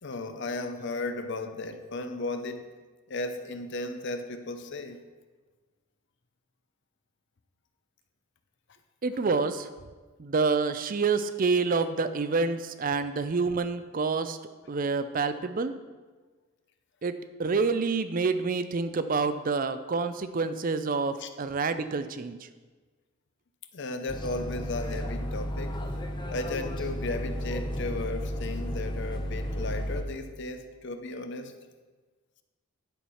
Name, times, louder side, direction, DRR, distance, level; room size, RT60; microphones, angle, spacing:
voice 1, 0.0-2.7 3.1-5.0 21.2-21.3 23.7-25.8 26.3-31.5, left 2 dB, 55° left, 8 dB, 0.7 m, -35 dB
voice 2, 9.0-9.7 10.2-14.4 14.7-15.7 17.0-22.5, right 4 dB, 40° right, 11 dB, 0.4 m, -28 dB
sound 1, 24.1-30.0, equal, 20° left, 0.7 m, -33 dB
11.5 x 4.6 x 5.6 m, 1.3 s
head